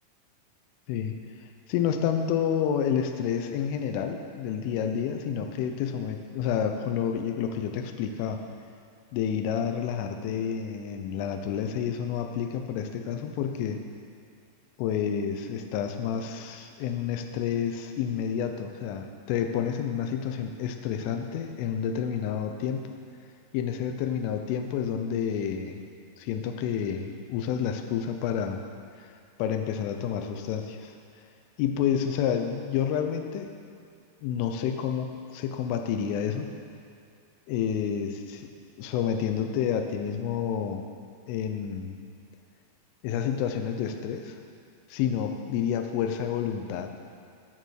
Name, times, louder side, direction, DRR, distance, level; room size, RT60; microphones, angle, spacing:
voice 1, 1.7-8.4 9.1-13.8 14.8-22.9 23.5-25.8 26.2-28.6 29.4-30.9 31.6-33.5 34.2-36.5 37.5-38.5 38.8-40.8 41.3-42.0 43.0-44.4 44.9-46.9, left 8 dB, 80° left, 5 dB, 3.3 m, -29 dB
19.0 x 6.6 x 6.5 m, 2.4 s
omnidirectional pair, 5.8 m